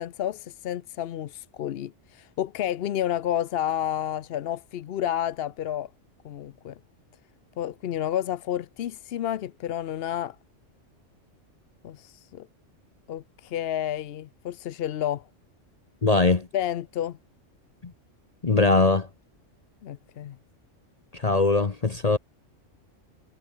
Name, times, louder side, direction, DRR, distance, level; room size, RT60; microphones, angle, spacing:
voice 1, 0.0-5.9 6.2-6.8 7.6-10.4 11.8-12.5 13.1-15.3 16.5-17.2 19.8-20.4, left 11 dB, 60° left, 0.7 m, -30 dB
voice 2, 16.0-16.5 18.4-19.1 21.1-22.2, left 3 dB, 35° left, 1.0 m, -21 dB
omnidirectional pair, 1.3 m